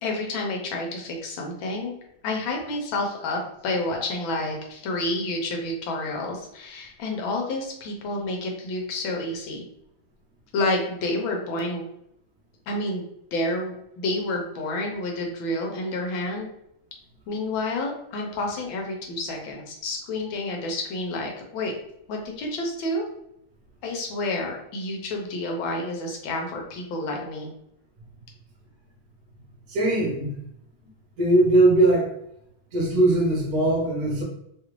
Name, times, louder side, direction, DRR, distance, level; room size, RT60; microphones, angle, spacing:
voice 1, 0.0-1.9 2.2-9.6 10.5-11.9 12.7-13.0 13.3-16.5 17.3-21.7 22.1-23.0 23.8-27.5, left 2 dB, 80° left, 1 dB, 1.4 m, -29 dB
voice 2, 29.7-30.3 31.2-32.1 32.7-34.2, right 2 dB, 55° right, -3 dB, 1.2 m, -20 dB
3.4 x 2.4 x 3.0 m, 0.75 s
omnidirectional pair, 2.2 m